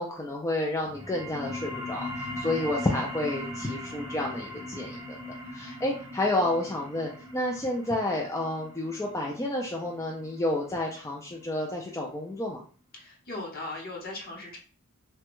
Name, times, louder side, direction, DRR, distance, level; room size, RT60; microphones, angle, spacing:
voice 1, 0.0-5.2 5.5-12.6, left 1 dB, 15° left, -1 dB, 0.3 m, -30 dB
sound 1, 0.8-11.9, left 1 dB, 15° right, 0.7 m, -40 dB
voice 2, 12.9-14.6, left 2 dB, 45° left, -1 dB, 0.9 m, -38 dB
3.3 x 2.2 x 2.9 m, 0.42 s
head